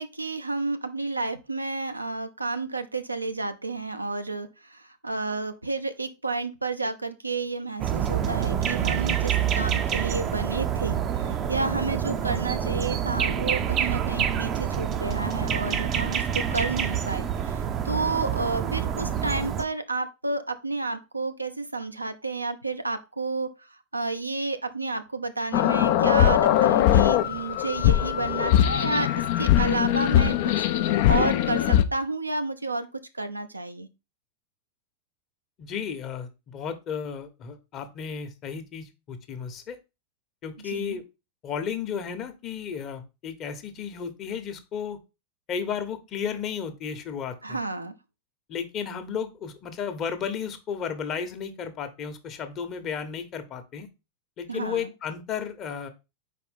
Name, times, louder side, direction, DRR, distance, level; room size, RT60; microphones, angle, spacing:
voice 1, 0.0-29.1 29.4-33.9 40.7-41.0 47.4-47.9 54.5-54.9, right 3 dB, 85° right, 0.6 m, -31 dB
sound 1, 7.8-19.6, right 8 dB, 30° right, 0.6 m, -27 dB
sound 2, 25.5-31.8, left 11 dB, 50° left, 0.5 m, -21 dB
voice 2, 35.6-39.8 40.4-41.0 41.4-45.0 45.5-47.6 48.5-53.9 54.4-55.9, left 7 dB, 35° left, 1.0 m, -33 dB
4.8 x 4.3 x 5.3 m
figure-of-eight pair, 90°, 0 cm